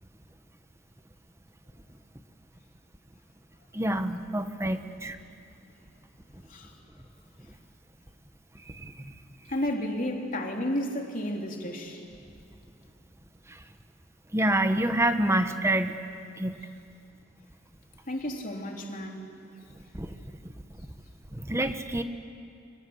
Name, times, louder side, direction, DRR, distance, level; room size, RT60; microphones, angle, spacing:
voice 1, 3.7-5.2 8.7-9.1 13.5-13.6 14.3-16.0 16.4-16.6 19.9-20.2 21.3-22.0, right 1 dB, 15° right, 8 dB, 1.3 m, -27 dB
voice 2, 9.5-12.0 18.1-19.3, left 1 dB, 45° left, 1 dB, 3.3 m, -32 dB
29.0 x 24.5 x 8.0 m, 2.4 s
head